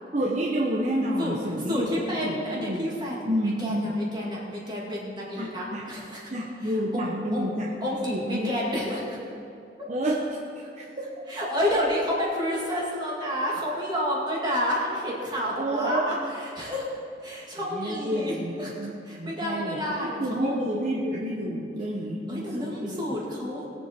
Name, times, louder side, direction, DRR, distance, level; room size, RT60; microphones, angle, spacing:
voice 1, 0.1-1.9 2.2-2.8 3.3-3.9 5.4-5.9 6.3-7.7 8.1-8.5 9.9-10.4 10.8-11.1 15.6-16.0 17.7-18.5 18.8-19.8 20.2-23.0, right 1 dB, 40° right, -3 dB, 1.1 m, -29 dB
voice 2, 1.7-3.2 3.6-6.3 6.6-7.5 7.8-9.2 11.3-16.8 17.2-18.7 19.0-20.6 22.3-23.7, equal, 25° right, -5 dB, 2.3 m, -30 dB
20.5 x 7.7 x 4.5 m, 2.7 s
head